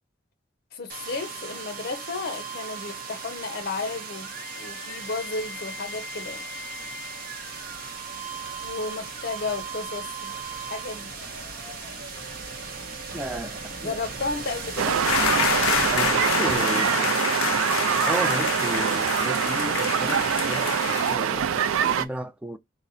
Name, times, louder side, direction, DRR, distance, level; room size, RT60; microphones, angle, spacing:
voice 1, 0.7-6.5 8.6-11.1 11.7-11.8 13.8-15.0, left 3 dB, 50° left, 0.7 m, -33 dB
sound 1, 0.9-16.7, right 4 dB, 45° right, 0.7 m, -37 dB
voice 2, 13.1-14.0 15.9-17.2 18.1-22.6, right 1 dB, 5° right, 0.3 m, -34 dB
sound 2, 14.8-22.1, right 8 dB, 85° right, 0.4 m, -24 dB
sound 3, 15.0-21.2, left 11 dB, 85° left, 0.3 m, -28 dB
4.0 x 2.1 x 3.9 m
head